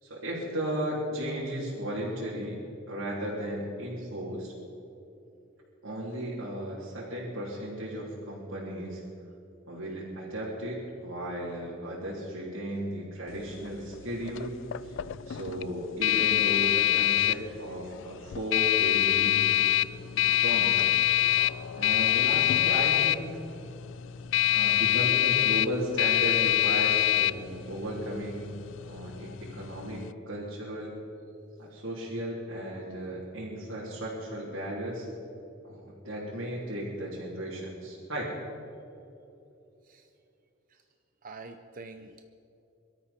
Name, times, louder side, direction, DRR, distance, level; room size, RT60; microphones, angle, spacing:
voice 1, 0.0-2.6 2.9-4.5 5.8-9.0 9.7-14.6 14.8-15.0 15.3-19.5 20.2-20.9 21.8-23.3 24.5-28.5 28.8-30.9 31.6-35.1 35.6-38.3, right 1 dB, 75° right, -8 dB, 3.5 m, -35 dB
sound 1, 13.3-30.1, left 13 dB, 65° left, 0.4 m, -26 dB
voice 2, 41.2-42.2, right 3 dB, 40° right, 7 dB, 0.6 m, -45 dB
24.0 x 13.0 x 4.4 m, 2.8 s
head